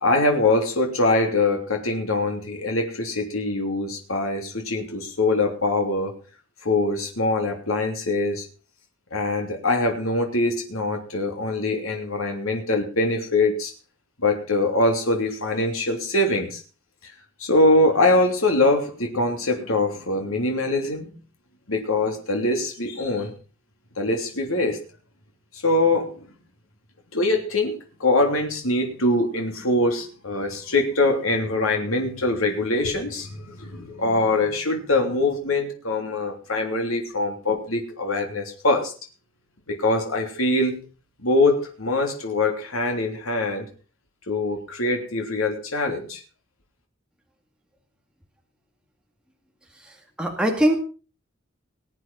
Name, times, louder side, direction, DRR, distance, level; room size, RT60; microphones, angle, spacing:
voice 1, 0.0-6.1 6.6-8.5 9.1-13.7 14.2-16.6 17.4-21.1 21.7-23.3 24.0-24.8 25.5-26.2 27.1-38.9 39.7-40.8 41.2-43.7 44.3-46.2, left 2 dB, 85° left, 3 dB, 3.2 m, -23 dB
voice 2, 49.7-50.8, right 1 dB, 5° right, 1 dB, 2.3 m, -23 dB
21.0 x 8.8 x 5.6 m, 0.37 s
head